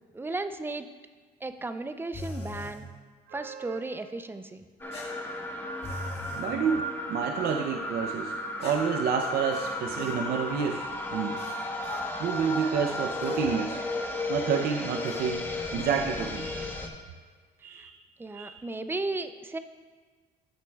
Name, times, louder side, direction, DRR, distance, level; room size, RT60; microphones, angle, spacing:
voice 1, 0.1-0.9 1.4-2.9 3.3-4.6 17.7-17.9 18.2-19.6, right 2 dB, 15° right, 10 dB, 0.5 m, -35 dB
sound 1, 2.1-2.8 4.9-6.5 8.6-10.2 11.3-12.1 13.2-13.5 15.0-15.3, left 3 dB, 35° left, 1.6 m, -41 dB
voice 2, 3.3-3.8 6.4-8.3 8.6-10.8 11.1-11.4 12.2-13.8 14.3-16.8 17.6-18.0 18.3-18.6, right 7 dB, 70° right, 4 dB, 0.6 m, -29 dB
sound 2, 4.8-16.9, left 2 dB, 10° left, 0.9 m, -34 dB
15.0 x 6.0 x 2.3 m, 1.5 s
cardioid pair, 110°, 17 cm